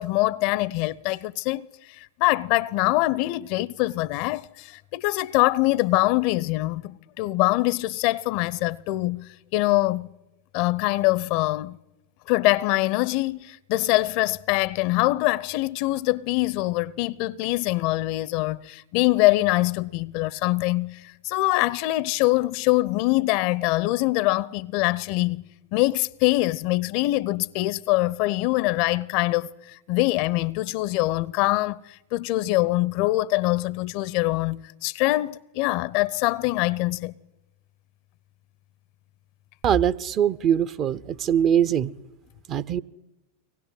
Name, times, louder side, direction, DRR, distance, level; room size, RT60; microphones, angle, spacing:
voice 1, 0.0-10.1 10.5-11.8 12.3-25.4 25.7-37.1, left 19 dB, 45° left, 0.7 m, -24 dB
voice 2, 39.6-41.9 42.5-42.8, right 9 dB, 35° right, 0.9 m, -22 dB
24.0 x 19.5 x 9.2 m
figure-of-eight pair, 90°, 0 cm